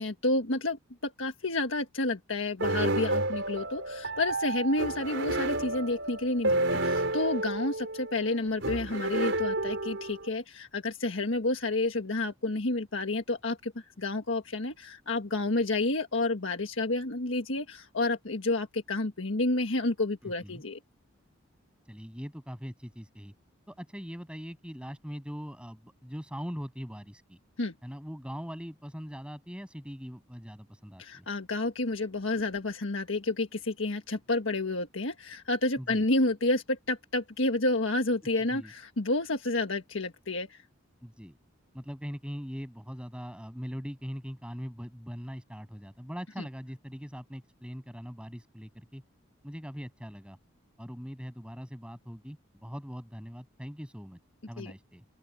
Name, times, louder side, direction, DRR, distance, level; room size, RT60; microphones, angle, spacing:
voice 1, 0.0-20.8 27.6-27.7 31.0-40.6 46.4-46.5 54.6-54.7, left 2 dB, 70° left, 1.5 m, -30 dB
sound 1, 2.6-10.3, right 2 dB, 65° right, 5.6 m, -30 dB
voice 2, 20.2-20.6 21.8-23.3 23.7-27.4 27.8-31.3 35.8-36.0 38.5-38.7 41.0-41.4 41.7-49.0 49.4-50.4 50.8-54.2 54.5-55.0, equal, 5° right, 7.8 m, -41 dB
open air
head